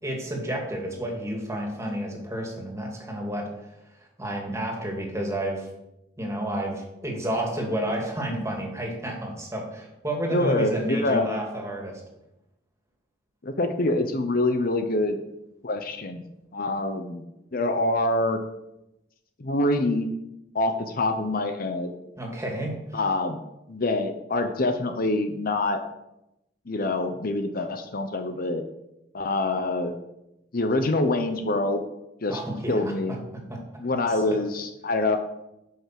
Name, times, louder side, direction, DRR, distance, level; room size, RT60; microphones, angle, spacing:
voice 1, 0.0-3.5 4.2-5.7 6.2-12.0 22.2-23.0 32.3-32.9 33.5-33.6 34.1-34.4, right 1 dB, 15° right, 0 dB, 2.3 m, -30 dB
voice 2, 10.3-11.3 13.4-15.2 15.6-16.2 16.5-17.2 17.5-18.4 19.4-20.1 20.5-21.9 22.9-23.4 23.7-25.8 26.7-28.6 29.1-29.9 30.5-31.8 32.2-32.4 32.7-33.2 33.8-35.2, left 2 dB, 50° left, 7 dB, 0.8 m, -25 dB
11.0 x 5.6 x 6.0 m, 0.90 s
head